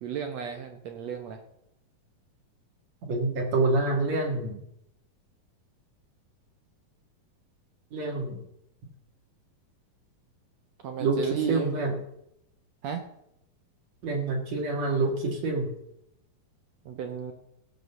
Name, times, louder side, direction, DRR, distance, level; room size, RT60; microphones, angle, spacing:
voice 1, 0.0-1.4 10.8-11.8 12.8-13.1 16.8-17.3, right 7 dB, 75° right, 6 dB, 1.6 m, -34 dB
voice 2, 3.0-4.6 7.9-8.4 11.0-11.2 11.5-12.0 14.0-15.7, right 3 dB, 55° right, 2 dB, 2.5 m, -27 dB
16.5 x 6.2 x 7.0 m, 0.79 s
omnidirectional pair, 4.2 m